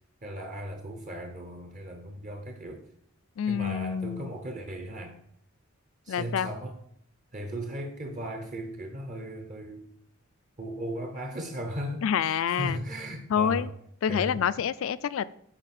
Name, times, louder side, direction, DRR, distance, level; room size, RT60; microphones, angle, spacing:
voice 1, 0.2-2.8 3.5-5.2 6.0-6.8 7.3-9.8 10.6-13.7 14.1-14.4, equal, 35° right, 0.7 m, -37 dB
voice 2, 3.4-4.3 6.1-6.5 12.0-12.8 13.3-13.7 14.0-15.3, left 8 dB, 70° left, 0.3 m, -27 dB
8.7 x 4.6 x 4.2 m
head